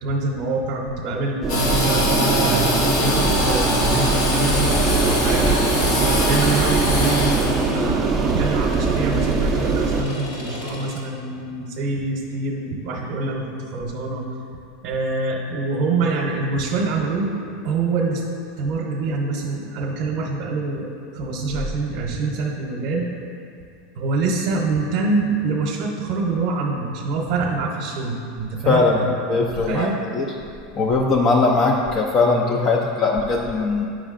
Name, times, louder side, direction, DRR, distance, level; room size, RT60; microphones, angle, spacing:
voice 1, 0.0-5.6 6.0-14.2 14.8-17.4 17.6-18.2 18.6-23.1 23.9-29.2 29.6-30.0, right 3 dB, 60° right, -1 dB, 0.8 m, -25 dB
sound 1, 1.4-10.0, right 4 dB, 20° right, 0.4 m, -22 dB
Engine / Sawing, 1.5-11.0, left 2 dB, 75° left, 1.4 m, -24 dB
voice 2, 28.7-30.3 30.8-33.9, left 3 dB, 35° left, 0 dB, 0.5 m, -20 dB
8.8 x 6.1 x 2.5 m, 2.5 s
supercardioid pair, 135°, 0 cm